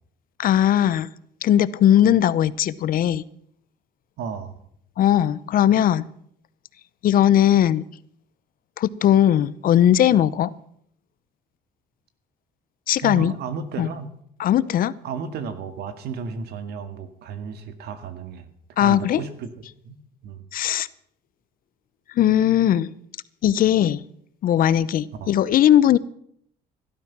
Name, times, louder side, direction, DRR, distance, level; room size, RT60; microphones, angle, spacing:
voice 1, 0.4-1.1 1.4-3.2 5.0-6.1 7.0-7.8 8.8-10.5 12.9-13.3 13.8-13.9 14.4-14.9 18.8-19.2 20.5-20.9 22.2-22.9 23.4-24.0 24.4-26.0, left 11 dB, 55° left, 19 dB, 0.7 m, -18 dB
voice 2, 4.2-4.5 13.0-14.1 15.0-18.5 18.8-19.5 19.8-20.4 25.1-25.3, right 6 dB, 75° right, 10 dB, 2.1 m, -33 dB
17.0 x 12.5 x 6.0 m, 0.68 s
cardioid pair, 110°, 17 cm